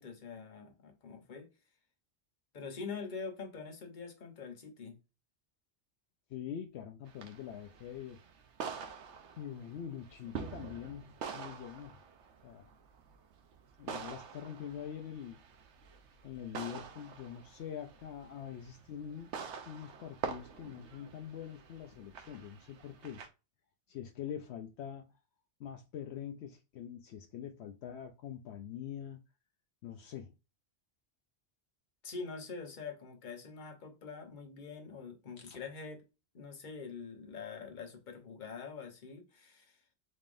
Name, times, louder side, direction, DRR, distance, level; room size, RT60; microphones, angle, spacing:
voice 1, 0.0-1.5 2.5-5.0 32.0-36.0 36.3-39.8, left 5 dB, 45° left, 1.0 m, -45 dB
voice 2, 6.3-8.2 9.4-12.0 12.4-12.7 13.8-15.4 16.2-19.3 19.7-23.2 23.9-25.1 25.6-29.2 29.8-30.3 35.4-35.6, left 9 dB, 75° left, 0.8 m, -44 dB
sound 1, 7.1-23.3, right 6 dB, 90° right, 1.0 m, -46 dB
4.2 x 3.5 x 2.5 m
omnidirectional pair, 1.1 m